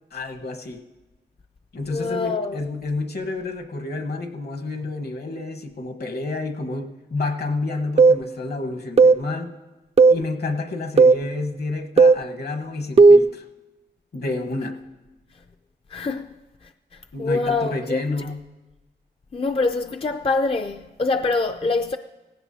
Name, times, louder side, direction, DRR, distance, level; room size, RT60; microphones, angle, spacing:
voice 1, 0.1-0.8 1.7-9.5 10.1-13.4 14.1-14.8 17.1-18.4, left 3 dB, 60° left, 1.2 m, -29 dB
voice 2, 1.9-2.6 15.3-15.4 15.9-16.3 16.6-18.3 19.3-22.0, left 3 dB, 30° left, 0.4 m, -25 dB
sound 1, 8.0-8.2 9.0-9.2 10.0-10.2 11.0-11.2 12.0-12.2 13.0-13.3, right 4 dB, 35° right, 0.3 m, -12 dB
17.5 x 16.0 x 2.8 m
wide cardioid pair, 75°, 18 cm